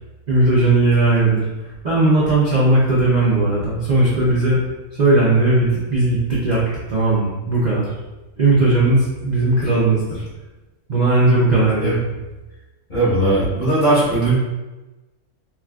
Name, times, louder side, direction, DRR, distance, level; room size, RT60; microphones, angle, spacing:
voice 1, 0.3-4.6 4.9-6.6 6.9-7.9 8.4-10.2 10.9-12.1, right 2 dB, 45° right, -7 dB, 0.5 m, -17 dB
voice 2, 12.9-14.3, right 2 dB, 35° left, -8 dB, 1.1 m, -18 dB
4.5 x 2.4 x 2.3 m, 1.1 s
omnidirectional pair, 1.5 m